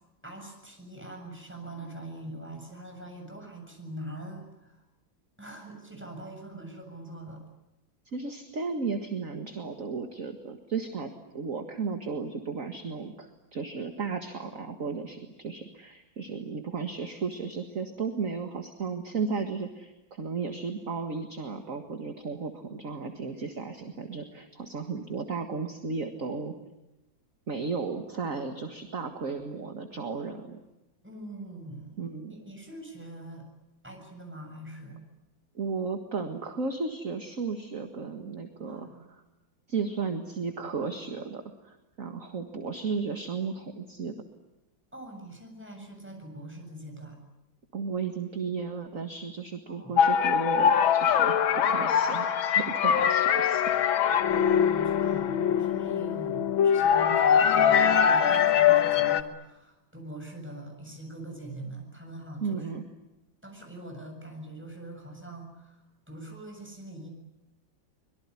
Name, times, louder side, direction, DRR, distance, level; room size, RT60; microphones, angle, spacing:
voice 1, 0.2-4.8 5.4-7.5 31.0-32.0 32.3-33.5 33.8-35.0 38.7-39.1 44.9-47.2 49.7-50.0 54.3-62.7 63.4-67.1, right 1 dB, 5° right, 2 dB, 7.4 m, -43 dB
voice 2, 8.1-26.5 27.5-30.6 32.0-32.3 35.5-39.2 39.7-44.2 47.7-53.6 62.4-62.9, right 5 dB, 45° right, 5 dB, 2.1 m, -34 dB
sound 1, 50.0-59.2, left 8 dB, 90° left, 2.0 m, -23 dB
24.5 x 22.5 x 9.8 m, 0.96 s
omnidirectional pair, 2.1 m